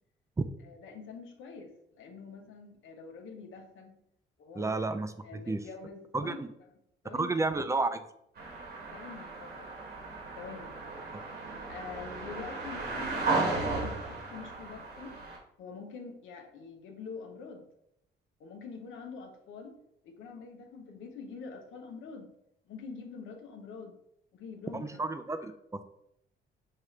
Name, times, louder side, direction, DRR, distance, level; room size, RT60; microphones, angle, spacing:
voice 1, 0.6-4.0 4.4-4.8 5.2-6.4 7.0-7.3 8.9-9.7 10.4-10.8 11.7-15.2 15.6-17.7 18.4-19.8 20.0-22.3 22.7-24.0 24.3-25.1, left 5 dB, 80° left, 4 dB, 0.8 m, -45 dB
voice 2, 4.6-5.6 6.1-6.5 7.1-8.0 24.7-25.8, right 3 dB, 15° right, 9 dB, 0.4 m, -31 dB
sound 1, 8.4-15.4, right 3 dB, 55° right, 1.4 m, -35 dB
6.6 x 2.4 x 3.2 m, 0.76 s
cardioid pair, 90°, 20 cm